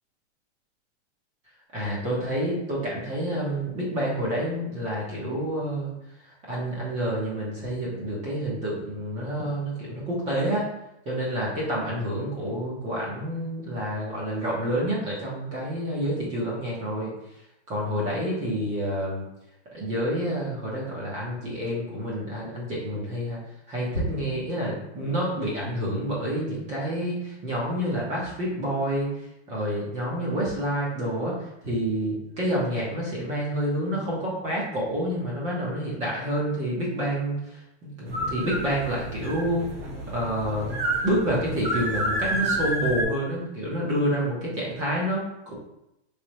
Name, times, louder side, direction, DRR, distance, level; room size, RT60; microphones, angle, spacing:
voice 1, 1.7-5.9 6.5-10.7 11.1-17.1 17.7-19.2 19.7-23.4 23.7-39.7 40.1-40.7 41.0-45.5, equal, 20° right, -5 dB, 0.9 m, -28 dB
sound 1, 38.1-43.0, right 1 dB, 55° right, 1.3 m, -29 dB
3.3 x 3.3 x 3.0 m, 0.87 s
hypercardioid pair, 155°, 34 cm